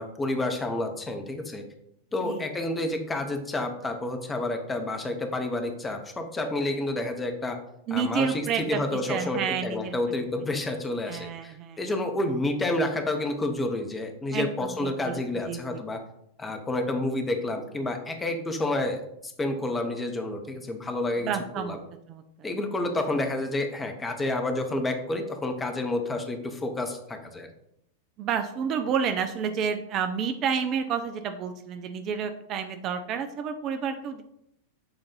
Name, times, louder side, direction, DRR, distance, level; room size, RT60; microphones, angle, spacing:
voice 1, 0.0-1.6 2.1-7.6 7.9-16.0 16.4-21.8 22.4-27.5, left 2 dB, 15° left, 5 dB, 0.9 m, -29 dB
voice 2, 7.9-10.0 11.1-11.8 14.3-15.2 15.5-15.8 21.2-21.8 22.1-22.2 28.2-34.2, right 7 dB, 35° right, 7 dB, 0.4 m, -30 dB
6.9 x 2.6 x 5.4 m, 0.77 s
figure-of-eight pair, 90°, 0 cm